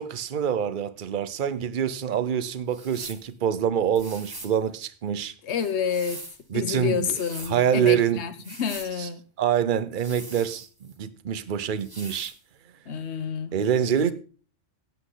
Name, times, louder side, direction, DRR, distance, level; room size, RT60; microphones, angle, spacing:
voice 1, 0.0-5.3 6.5-7.1 7.5-8.2 9.0-9.1 9.4-12.3 13.5-14.1, right 8 dB, 45° right, 0.9 m, -25 dB
sound 1, 2.7-3.3 3.9-4.6 5.5-6.4 6.9-7.6 8.3-8.9 9.9-11.0 11.8-12.4, right 1 dB, 20° right, 1.5 m, -42 dB
voice 2, 5.4-6.2 6.5-9.2 12.9-13.5, left 7 dB, 60° left, 1.3 m, -29 dB
16.5 x 8.2 x 3.9 m
omnidirectional pair, 1.3 m